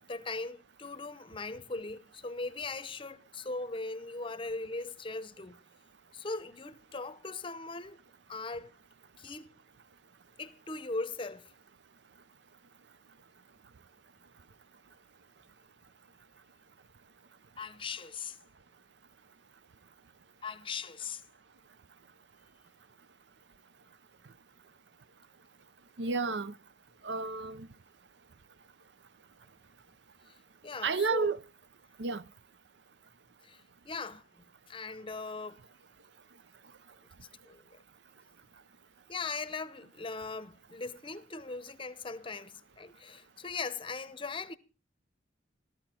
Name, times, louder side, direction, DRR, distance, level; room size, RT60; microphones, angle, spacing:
voice 1, 0.1-5.6 6.1-8.0 8.3-8.7 9.2-9.5 10.4-11.5 17.6-18.4 20.4-21.2 30.3-30.4 30.6-31.3 33.4-35.7 37.4-37.8 39.1-44.6, left 3 dB, 30° left, 0.7 m, -39 dB
voice 2, 26.0-26.6 27.0-27.7 30.8-31.4 32.0-32.2, right 4 dB, 70° right, 0.6 m, -31 dB
15.0 x 13.5 x 4.4 m
head